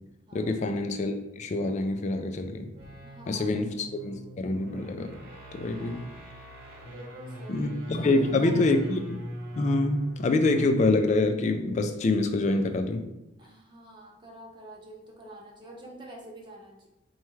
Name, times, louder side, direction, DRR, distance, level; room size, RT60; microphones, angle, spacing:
voice 1, 0.3-2.7 3.3-5.1 5.5-6.1 7.5-9.2 9.5-13.1, left 2 dB, 35° left, 7 dB, 0.3 m, -26 dB
sound 1, 2.6-11.1, equal, 55° right, 1.1 m, -41 dB
voice 2, 3.0-3.5 5.7-6.1 6.9-7.6 8.0-8.7 13.4-16.9, right 1 dB, 25° right, -1 dB, 0.6 m, -46 dB
4.2 x 2.3 x 3.1 m, 0.90 s
head